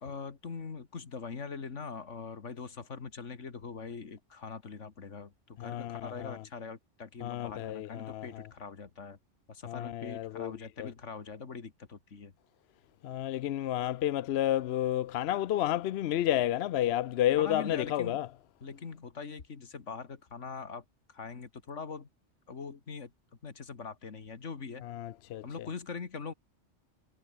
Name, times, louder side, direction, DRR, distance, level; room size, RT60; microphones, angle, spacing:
voice 1, 0.0-9.2 9.5-12.3 17.4-18.2 18.6-22.1 22.5-23.1 23.4-24.9 25.4-26.3, left 5 dB, 85° left, 2.2 m, -42 dB
voice 2, 5.6-6.3 7.2-8.3 9.7-10.9 13.0-18.3 24.8-25.4, left 12 dB, 65° left, 0.7 m, -31 dB
omnidirectional pair, 1.2 m